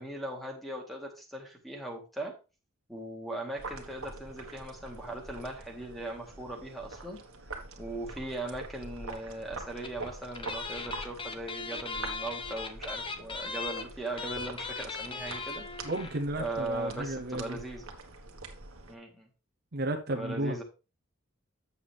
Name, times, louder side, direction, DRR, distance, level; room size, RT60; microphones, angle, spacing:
voice 1, 0.0-2.3 2.9-7.2 7.8-15.7 16.4-17.8 18.9-19.3 20.1-20.6, right 1 dB, ahead, 1.9 m, -39 dB
sound 1, 3.6-19.0, right 3 dB, 70° right, 1.6 m, -45 dB
sound 2, 9.8-10.1 10.3-16.2 16.5-16.6 16.8-17.0, left 4 dB, 25° left, 0.8 m, -38 dB
voice 2, 15.8-17.6 19.7-20.6, right 1 dB, 50° right, 0.9 m, -33 dB
8.2 x 7.1 x 3.5 m
head